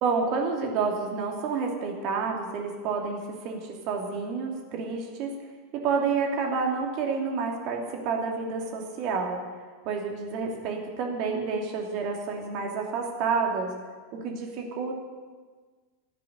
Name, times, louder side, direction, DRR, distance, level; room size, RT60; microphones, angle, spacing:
voice 1, 0.0-5.3 5.7-9.4 9.8-13.7 14.1-14.9, right 5 dB, 40° right, 1 dB, 2.7 m, -29 dB
13.0 x 9.7 x 8.9 m, 1.4 s
figure-of-eight pair, 90°, 0 cm